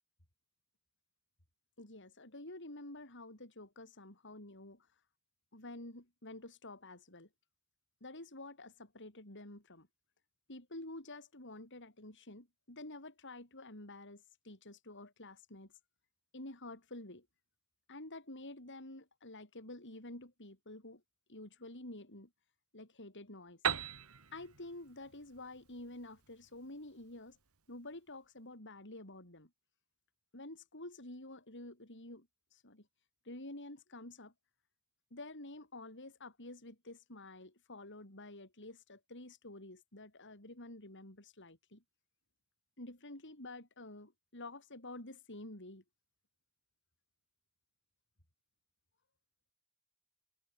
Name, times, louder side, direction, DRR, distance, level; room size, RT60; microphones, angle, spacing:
voice 1, 1.8-4.9 5.5-7.3 8.0-9.9 10.5-15.7 16.3-17.3 17.9-21.0 21.3-22.3 22.7-23.6 24.3-27.4 27.7-29.5 30.3-32.9 33.2-34.3 35.1-41.8 42.8-45.8, left 2 dB, 55° left, 6.7 m, -49 dB
Piano, 23.6-27.3, right 7 dB, 80° right, 2.6 m, -40 dB
head